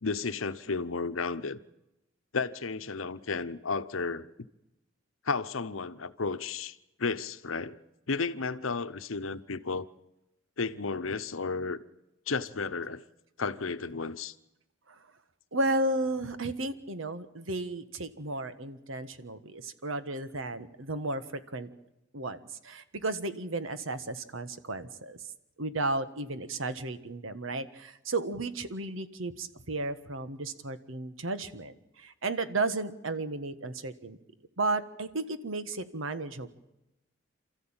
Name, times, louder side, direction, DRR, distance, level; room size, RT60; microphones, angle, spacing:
voice 1, 0.0-1.6 2.3-4.3 5.3-7.8 8.1-9.9 10.6-11.8 12.3-13.0 13.4-14.3, left 4 dB, 85° left, 0.9 m, -33 dB
voice 2, 15.5-21.7 22.1-25.2 25.6-34.2 34.6-36.5, right 2 dB, 80° right, 1.5 m, -34 dB
28.0 x 14.0 x 8.9 m
head